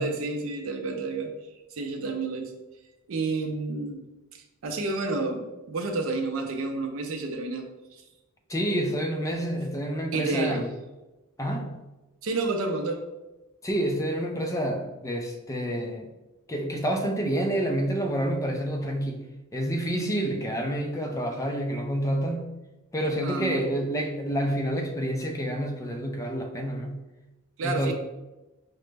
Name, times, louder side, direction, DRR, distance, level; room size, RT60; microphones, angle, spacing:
voice 1, 0.0-1.3 1.8-2.5 3.1-4.0 4.3-8.0 10.1-10.6 12.2-13.0 23.2-23.6 27.6-27.9, right 3 dB, 65° right, 3 dB, 0.5 m, -30 dB
voice 2, 8.5-10.7 11.4-11.8 13.6-16.1 16.5-19.2 19.5-22.5 22.9-27.0 27.6-27.9, right 1 dB, 15° left, 3 dB, 0.4 m, -28 dB
4.9 x 2.1 x 3.2 m, 1.1 s
head